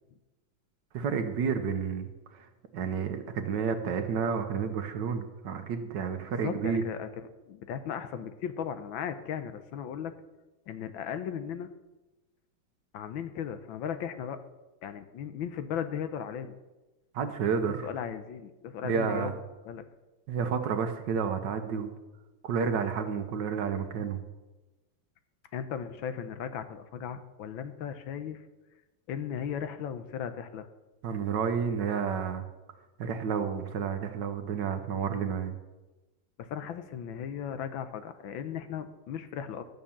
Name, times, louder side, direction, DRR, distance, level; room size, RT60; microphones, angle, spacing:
voice 1, 0.9-2.5 2.7-6.8 17.1-17.9 18.8-19.3 20.3-21.9 22.4-24.2 31.0-32.4 33.0-35.5, right 6 dB, 65° right, 7 dB, 1.5 m, -30 dB
voice 2, 6.3-10.1 10.7-11.7 12.9-14.4 14.8-16.6 17.5-19.3 19.6-19.9 25.5-28.5 29.1-30.7 36.4-39.6, left 8 dB, 75° left, 10 dB, 1.5 m, -36 dB
13.0 x 6.6 x 7.2 m, 1.1 s
omnidirectional pair, 2.3 m